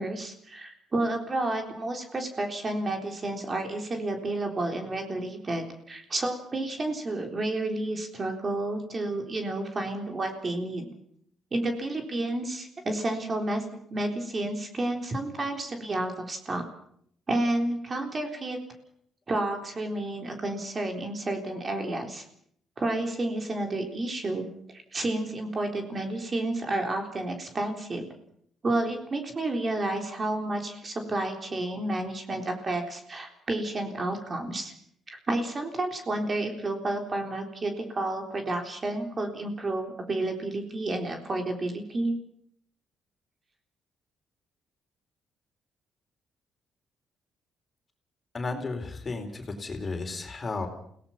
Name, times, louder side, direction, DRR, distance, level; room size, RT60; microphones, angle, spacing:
voice 1, 0.0-10.9 11.5-13.6 13.9-16.6 17.3-18.6 19.3-22.2 22.8-24.5 24.9-28.1 28.6-34.7 35.1-42.2, right 2 dB, 35° right, 3 dB, 3.8 m, -30 dB
voice 2, 48.3-50.7, left 3 dB, 35° left, 5 dB, 4.2 m, -33 dB
28.5 x 18.0 x 5.9 m, 0.67 s
cardioid pair, 90°, 0 cm